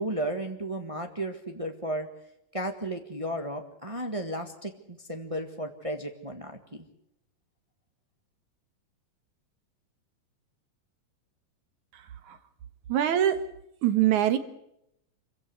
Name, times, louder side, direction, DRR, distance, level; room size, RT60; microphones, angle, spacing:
voice 1, 0.0-2.1 2.5-6.8, right 1 dB, 40° right, 5 dB, 0.4 m, -34 dB
voice 2, 11.9-12.4 12.9-13.4 13.8-14.4, right 11 dB, 65° right, 10 dB, 2.7 m, -24 dB
26.0 x 16.5 x 8.1 m, 0.80 s
omnidirectional pair, 3.9 m